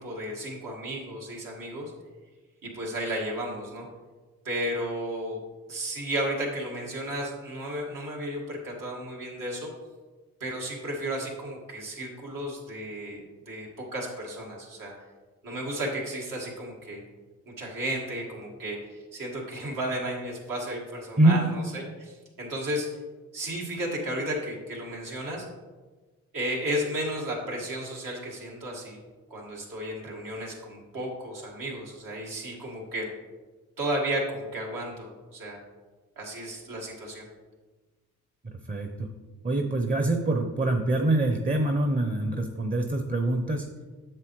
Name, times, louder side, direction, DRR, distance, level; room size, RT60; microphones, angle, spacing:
voice 1, 0.0-1.9 2.6-3.9 4.4-5.4 5.7-9.7 10.4-13.2 13.5-14.9 15.4-17.0 17.5-22.9 23.3-25.5 26.3-29.0 29.3-33.1 33.8-35.6 36.2-37.3, right 1 dB, 75° right, -2 dB, 2.1 m, -33 dB
voice 2, 38.4-39.1 39.4-43.7, right 2 dB, 25° right, 4 dB, 0.8 m, -25 dB
7.6 x 7.1 x 3.1 m, 1.3 s
cardioid pair, 55°, 33 cm